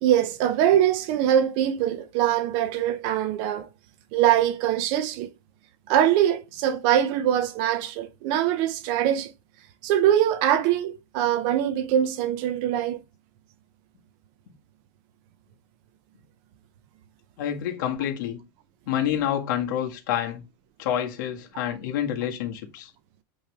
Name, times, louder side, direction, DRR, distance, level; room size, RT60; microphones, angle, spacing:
voice 1, 0.0-3.7 4.1-5.3 5.9-9.3 9.8-13.0, right 11 dB, 40° right, 0.7 m, -23 dB
voice 2, 17.4-18.4 18.9-20.4 20.8-22.9, left 10 dB, 60° left, 1.6 m, -28 dB
8.4 x 3.2 x 3.5 m
supercardioid pair, 170°, 11 cm